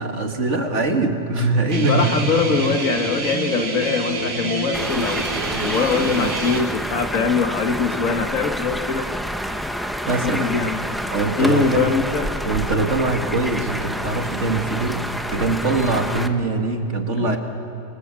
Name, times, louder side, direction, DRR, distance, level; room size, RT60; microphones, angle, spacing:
voice 1, 0.0-2.2 5.4-5.7 9.7-10.5 11.1-11.9 12.4-17.4, right 3 dB, 55° right, 4 dB, 2.3 m, -23 dB
Guitar, 1.7-6.6, right 3 dB, 70° right, 2.2 m, -27 dB
voice 2, 1.9-5.3 5.6-9.1 10.2-10.8 11.4-12.3 17.2-17.4, left 5 dB, 70° left, 6 dB, 1.9 m, -22 dB
sound 1, 4.7-16.3, equal, ahead, 0.8 m, -28 dB
26.5 x 25.5 x 7.5 m, 2.9 s
omnidirectional pair, 1.5 m